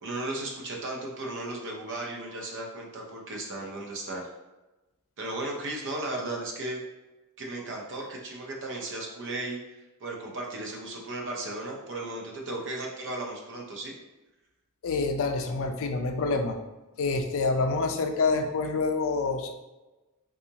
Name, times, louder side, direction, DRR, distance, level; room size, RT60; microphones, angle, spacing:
voice 1, 0.0-4.3 5.2-6.8 7.4-14.0, right 2 dB, 55° right, -1 dB, 0.7 m, -35 dB
voice 2, 14.8-16.6 17.0-19.5, left 3 dB, 65° left, 5 dB, 0.4 m, -27 dB
3.7 x 2.4 x 2.8 m, 1.1 s
head